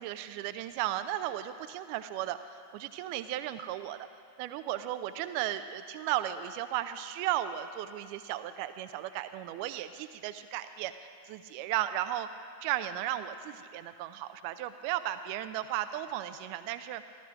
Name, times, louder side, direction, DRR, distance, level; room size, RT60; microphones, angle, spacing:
voice 1, 0.0-2.4 2.7-4.0 4.4-12.3 12.6-17.0, right 12 dB, 45° right, 11 dB, 0.5 m, -35 dB
14.5 x 13.5 x 5.1 m, 2.2 s
figure-of-eight pair, 90°, 0 cm